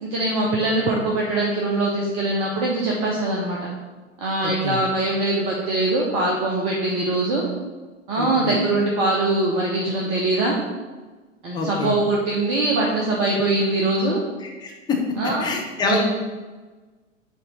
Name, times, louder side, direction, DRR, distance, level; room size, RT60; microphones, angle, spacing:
voice 1, 0.0-3.7 4.2-7.4 8.1-10.6 11.4-14.2 15.2-15.5 15.9-16.0, right 2 dB, 15° right, -2 dB, 0.4 m, -22 dB
voice 2, 4.4-4.8 8.2-8.5 11.5-12.0 14.4-15.0 15.4-16.0, left 4 dB, 10° left, -1 dB, 0.8 m, -26 dB
6.5 x 2.7 x 5.4 m, 1.3 s
figure-of-eight pair, 100°, 38 cm